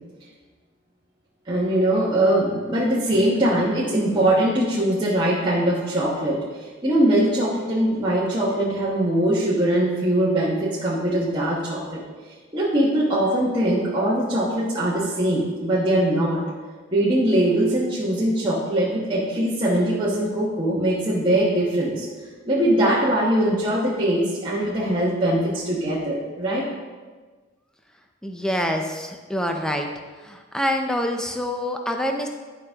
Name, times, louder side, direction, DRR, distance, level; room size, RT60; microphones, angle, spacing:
voice 1, 1.4-12.0 12.5-16.4 16.9-22.1 22.4-26.6, right 1 dB, 25° right, -8 dB, 1.2 m, -22 dB
voice 2, 28.2-29.9 30.2-32.3, equal, 5° left, 3 dB, 0.6 m, -26 dB
11.5 x 5.2 x 3.6 m, 1.4 s
head